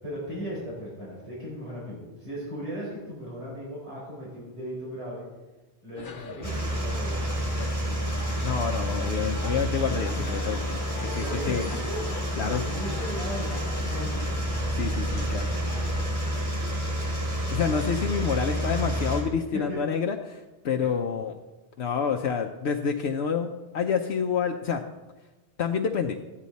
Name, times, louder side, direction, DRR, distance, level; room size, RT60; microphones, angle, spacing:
voice 1, 0.0-5.3 5.8-7.5 11.2-12.0 12.4-14.3 19.5-19.8 20.8-20.9, equal, 85° right, -7 dB, 5.3 m, -37 dB
sound 1, 6.0-16.1, left 3 dB, 50° left, 0.9 m, -41 dB
sound 2, 6.4-19.2, equal, 15° right, 3.8 m, -29 dB
voice 2, 8.4-10.7 11.0-11.6 12.4-12.6 14.7-15.6 17.5-21.4 21.8-24.8 25.6-26.2, left 6 dB, 80° left, 3 dB, 1.0 m, -28 dB
14.0 x 9.9 x 4.1 m, 1.1 s
omnidirectional pair, 1.1 m